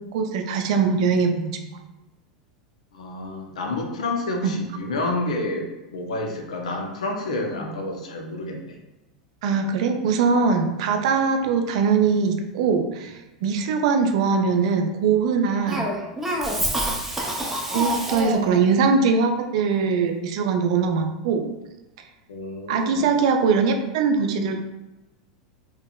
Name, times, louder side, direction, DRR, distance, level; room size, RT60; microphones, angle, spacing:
voice 1, 0.1-1.6 4.4-4.5 9.4-15.9 17.7-21.4 22.7-24.6, right 5 dB, 65° right, 5 dB, 0.3 m, -21 dB
voice 2, 2.9-8.8 22.3-23.1, left 2 dB, 75° left, 2 dB, 0.5 m, -29 dB
Cough, 15.7-18.6, right 1 dB, 10° right, 0.5 m, -26 dB
3.4 x 2.0 x 2.2 m, 1.0 s
hypercardioid pair, 90°, 4 cm